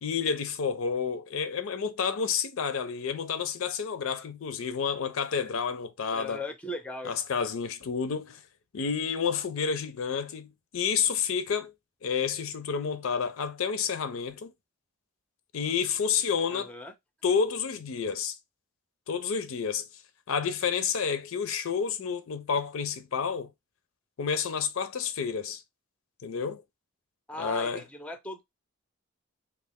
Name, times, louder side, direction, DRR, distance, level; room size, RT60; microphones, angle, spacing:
voice 1, 0.0-6.4 7.0-8.4 8.7-11.7 12.0-14.5 15.5-16.7 17.2-18.3 19.1-19.9 20.3-23.5 24.2-25.6 26.2-26.6 27.4-27.8, left 6 dB, 70° left, 0.5 m, -30 dB
voice 2, 6.1-7.1 16.5-16.9 27.3-28.4, left 1 dB, 5° left, 0.4 m, -38 dB
3.2 x 2.4 x 3.5 m
head